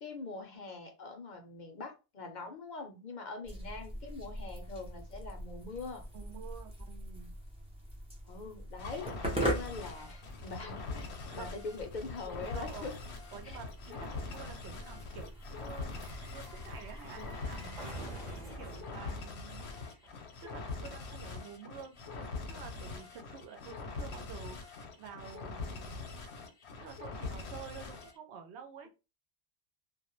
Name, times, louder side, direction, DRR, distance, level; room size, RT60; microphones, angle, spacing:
voice 1, 0.0-6.1 8.3-11.1 11.3-12.9, left 3 dB, 55° left, 4 dB, 0.6 m, -43 dB
sound 1, 3.4-17.7, equal, 10° right, 0.5 m, -42 dB
voice 2, 6.1-7.3 11.3-11.5 12.5-12.9 13.3-17.8 18.6-19.6 19.9-20.1 20.4-26.0 26.4-26.5 26.8-28.9, right 7 dB, 80° right, 5 dB, 0.9 m, -49 dB
sound 2, 8.8-28.2, left 4 dB, 75° left, 0.9 m, -43 dB
sound 3, 10.2-20.5 20.8-20.9, right 1 dB, 45° right, 0.7 m, -50 dB
2.2 x 2.0 x 2.9 m, 0.29 s
omnidirectional pair, 1.1 m